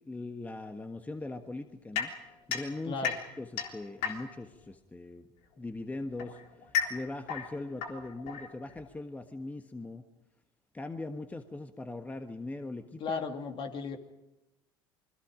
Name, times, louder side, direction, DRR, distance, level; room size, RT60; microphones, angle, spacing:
voice 1, 0.1-2.1 2.5-3.1 3.4-5.3 5.6-6.4 6.9-10.0 10.7-13.2, left 2 dB, 15° left, 7 dB, 1.5 m, -40 dB
sound 1, 2.0-4.6 5.6-8.9, left 7 dB, 65° left, 3.6 m, -35 dB
voice 2, 2.8-3.2 13.0-14.0, left 4 dB, 45° left, 5 dB, 2.8 m, -35 dB
28.0 x 22.0 x 5.2 m, 0.94 s
hypercardioid pair, 80°, 12 cm